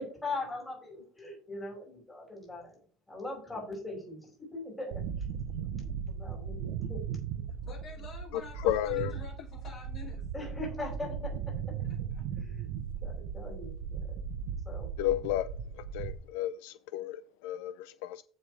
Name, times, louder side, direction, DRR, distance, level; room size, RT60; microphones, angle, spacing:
voice 1, 0.0-2.8 3.1-5.0 5.7-7.2 10.3-11.4 12.4-12.7 13.0-14.0 14.6-14.9, left 2 dB, 10° left, 4.7 m, -40 dB
sound 1, 4.9-16.1, right 7 dB, 70° right, 0.9 m, -37 dB
voice 2, 7.6-10.3 10.8-11.1 11.8-12.2, left 3 dB, 30° left, 5.2 m, -48 dB
voice 3, 8.6-9.1 15.0-15.5 15.9-18.2, left 13 dB, 75° left, 0.4 m, -32 dB
15.0 x 5.4 x 3.3 m
cardioid pair, 170°, 0 cm